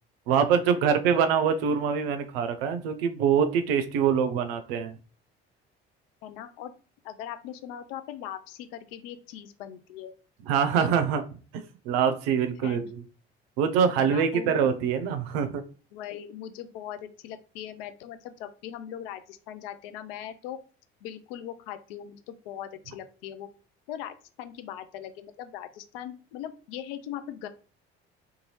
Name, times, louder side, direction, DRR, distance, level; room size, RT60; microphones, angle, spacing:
voice 1, 0.3-5.0 10.5-11.2 11.5-13.0 13.6-15.6, right 7 dB, 75° right, 9 dB, 0.5 m, -24 dB
voice 2, 6.2-6.7 7.0-10.1 10.8-10.9 12.6-12.9 14.0-14.6 15.9-20.6 21.0-23.5 23.9-27.5, left 10 dB, 75° left, 10 dB, 0.5 m, -40 dB
2.6 x 2.3 x 3.0 m, 0.37 s
hypercardioid pair, 55°, 30 cm